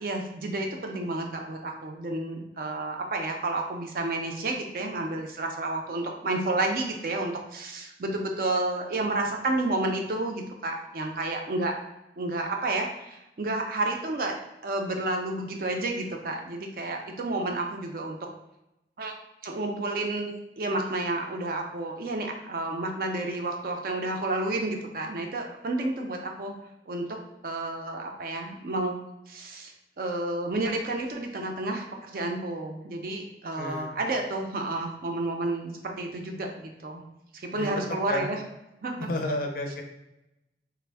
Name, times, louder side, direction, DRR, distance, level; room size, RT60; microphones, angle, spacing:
voice 1, 0.0-11.8 12.2-14.4 14.6-18.2 19.0-19.1 19.4-26.5 26.9-27.0 27.4-29.0 29.3-29.7 30.0-37.0 37.3-38.4 38.8-39.1, right 2 dB, 50° right, 3 dB, 0.4 m, -30 dB
voice 2, 33.5-34.0 37.5-37.7 38.1-38.2 39.0-39.8, left 1 dB, 50° left, 4 dB, 0.4 m, -31 dB
3.3 x 2.0 x 3.3 m, 0.89 s
head